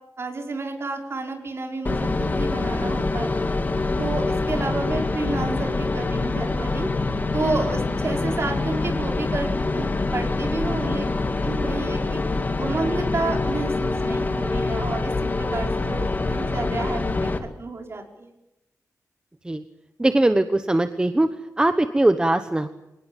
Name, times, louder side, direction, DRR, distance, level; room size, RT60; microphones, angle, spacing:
voice 1, 0.2-3.3 4.0-6.9 7.3-11.1 11.4-12.2 12.6-15.1 15.4-17.3 17.6-18.3, right 3 dB, 45° right, 3 dB, 5.2 m, -30 dB
sound 1, 1.9-17.4, left 3 dB, 30° left, 2.3 m, -25 dB
voice 2, 20.0-21.3 21.6-22.7, right 1 dB, 15° right, 9 dB, 1.1 m, -20 dB
26.5 x 19.0 x 9.1 m, 0.90 s
wide cardioid pair, 180°, 6 cm